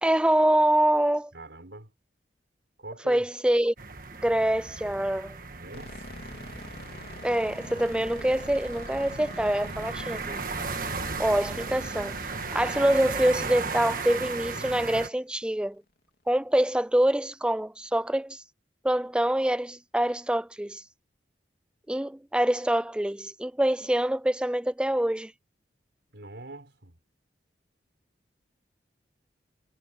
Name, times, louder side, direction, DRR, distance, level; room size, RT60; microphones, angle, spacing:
voice 1, 0.0-1.3 3.1-3.7 4.2-5.4 7.2-10.4 11.2-12.2 12.5-15.8 16.3-18.4 18.8-20.8 21.9-25.3, right 1 dB, 5° right, 0.4 m, -25 dB
voice 2, 1.3-1.9 2.8-3.2 5.5-6.2 26.1-27.0, right 2 dB, 75° right, 4.4 m, -44 dB
sound 1, 3.8-15.1, right 4 dB, 50° right, 1.6 m, -36 dB
sound 2, 5.7-14.9, left 1 dB, 55° left, 3.4 m, -44 dB
head